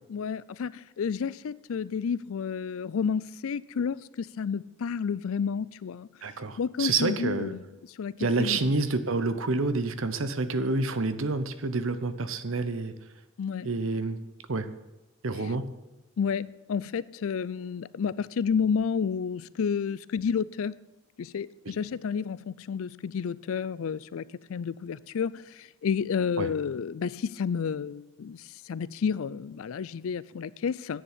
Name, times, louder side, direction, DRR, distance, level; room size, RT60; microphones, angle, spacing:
voice 1, 0.1-6.1 6.6-7.6 7.9-8.7 13.4-13.7 15.4-15.5 16.2-20.8 21.2-31.0, left 6 dB, 65° left, 0.4 m, -31 dB
voice 2, 6.2-7.5 8.2-12.9 13.6-14.2 14.5-14.7 15.2-15.6 26.4-26.5, right 3 dB, 60° right, 0.8 m, -28 dB
10.0 x 7.1 x 9.1 m
head